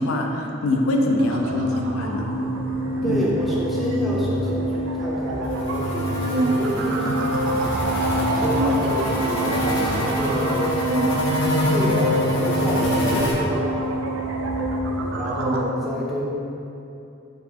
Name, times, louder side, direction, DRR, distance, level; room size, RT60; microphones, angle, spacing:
voice 1, 0.0-2.3 3.0-3.3, left 2 dB, 85° left, 2 dB, 0.4 m, -23 dB
sound 1, 1.2-15.6, right 1 dB, 70° right, 0.3 m, -25 dB
voice 2, 3.0-8.0 8.3-10.9 11.7-13.9 15.1-16.3, equal, ahead, -6 dB, 0.4 m, -29 dB
sound 2, 5.4-13.3, equal, 65° left, 0.8 m, -26 dB
3.1 x 3.0 x 3.5 m, 2.7 s
head